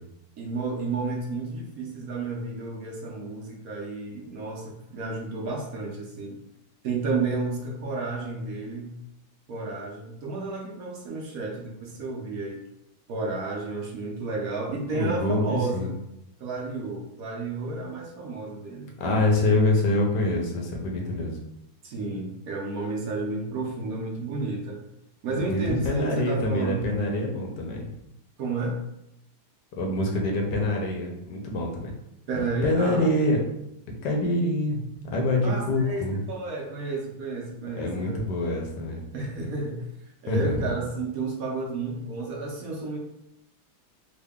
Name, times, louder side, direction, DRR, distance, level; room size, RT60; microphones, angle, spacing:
voice 1, 0.4-6.4 6.8-8.9 9.5-12.6 13.1-15.9 16.4-18.9 21.8-24.8 25.2-26.9 28.4-28.8 32.3-33.1 35.4-38.2 39.1-39.8 40.2-43.0, right 3 dB, 65° right, -1 dB, 1.1 m, -31 dB
voice 2, 14.9-15.9 19.0-21.4 25.3-27.9 29.8-31.9 32.6-33.4 34.0-36.2 37.7-39.0 40.3-40.7, left 1 dB, 85° left, 1 dB, 1.4 m, -25 dB
3.7 x 2.2 x 3.5 m, 0.81 s
omnidirectional pair, 1.8 m